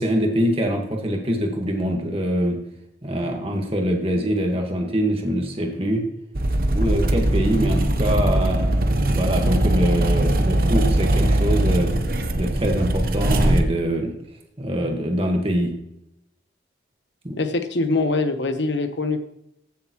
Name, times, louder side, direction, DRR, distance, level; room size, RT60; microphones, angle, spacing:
voice 1, 0.0-2.6 3.0-6.0 6.7-11.9 12.4-14.1 14.6-15.7 17.2-17.4, equal, 30° right, 2 dB, 1.6 m, -24 dB
sound 1, 6.3-13.6, right 1 dB, 50° right, 0.8 m, -20 dB
voice 2, 17.4-19.2, left 3 dB, 80° left, 8 dB, 1.0 m, -23 dB
15.0 x 7.0 x 3.1 m, 0.83 s
head